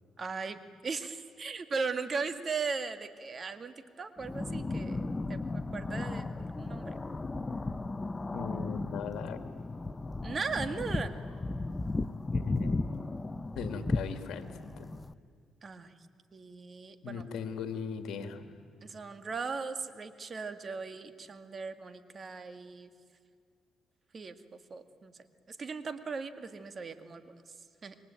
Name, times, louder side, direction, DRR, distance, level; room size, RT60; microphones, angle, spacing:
voice 1, 0.2-7.0 10.2-11.1 15.6-15.9 16.3-17.2 18.8-22.9 24.1-24.4 24.7-25.1 25.5-27.4 27.8-28.0, right 4 dB, 40° right, 10 dB, 2.0 m, -38 dB
sound 1, 4.2-15.1, left 3 dB, 20° left, 0.8 m, -35 dB
voice 2, 8.3-9.4 12.3-12.8 13.6-14.9 17.0-18.6, left 6 dB, 75° left, 8 dB, 2.2 m, -39 dB
28.5 x 23.0 x 9.0 m, 2.3 s
cardioid pair, 90°, 0 cm